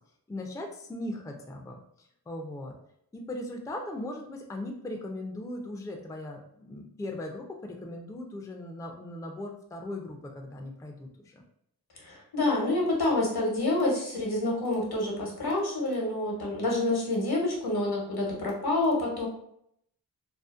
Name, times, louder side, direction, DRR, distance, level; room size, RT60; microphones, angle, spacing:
voice 1, 0.3-2.7 3.1-11.4, left 1 dB, 10° left, 2 dB, 0.3 m, -39 dB
voice 2, 12.0-19.3, left 2 dB, 70° left, -2 dB, 0.9 m, -28 dB
2.6 x 2.0 x 2.4 m, 0.73 s
wide cardioid pair, 50°, 39 cm